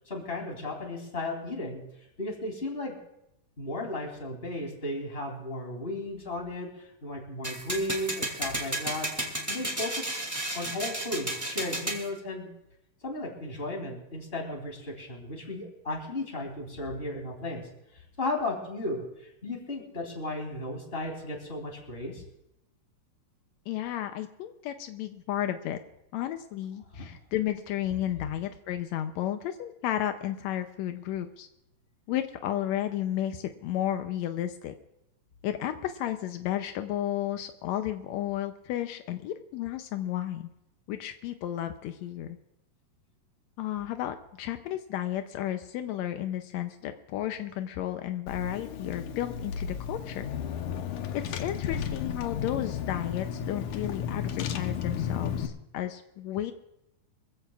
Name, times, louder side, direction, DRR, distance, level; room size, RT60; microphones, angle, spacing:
voice 1, 0.1-1.8 2.2-3.0 3.6-9.1 9.5-10.2 10.5-12.5 13.0-17.7 17.9-22.2 26.9-27.1, left 2 dB, 15° left, 1 dB, 3.0 m, -35 dB
sound 1, 7.4-12.0, right 1 dB, 5° right, 1.8 m, -33 dB
voice 2, 23.7-25.8 26.1-31.5 32.1-34.7 35.4-40.5 40.9-42.4 43.6-50.3 51.1-56.5, left 12 dB, 90° left, 8 dB, 1.5 m, -33 dB
Car / Engine, 48.3-55.5, left 8 dB, 70° left, 2.3 m, -33 dB
24.0 x 15.5 x 2.4 m, 0.83 s
omnidirectional pair, 3.9 m